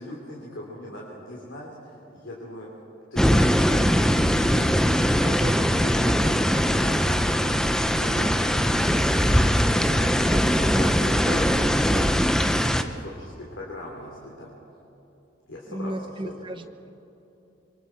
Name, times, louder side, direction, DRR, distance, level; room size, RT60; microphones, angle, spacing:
voice 1, 0.0-2.7 3.1-4.7 5.7-14.6 15.5-16.3, left 1 dB, 85° left, -3 dB, 3.0 m, -39 dB
sound 1, 3.2-12.8, equal, 5° left, 0.6 m, -21 dB
voice 2, 5.2-5.7 15.7-16.9, right 1 dB, 25° right, 7 dB, 1.0 m, -34 dB
26.0 x 24.0 x 4.5 m, 3.0 s
head